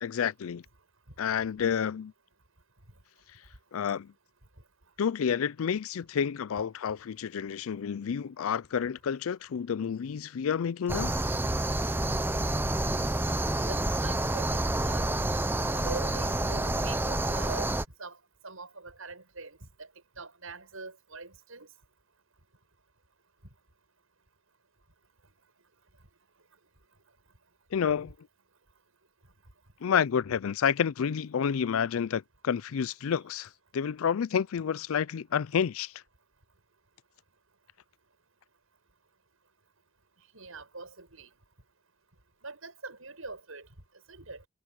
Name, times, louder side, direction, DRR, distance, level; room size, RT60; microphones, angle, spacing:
voice 1, 0.0-0.6 1.2-2.1 3.7-4.1 5.0-11.1 27.7-28.1 29.8-35.9, left 7 dB, 80° left, 0.4 m, -29 dB
sound 1, 10.9-17.8, right 1 dB, 10° right, 0.7 m, -28 dB
voice 2, 13.7-15.2 15.7-18.2 18.4-19.9 20.2-21.7 40.3-41.3 42.4-43.7 44.1-44.4, right 3 dB, 80° right, 6.9 m, -43 dB
head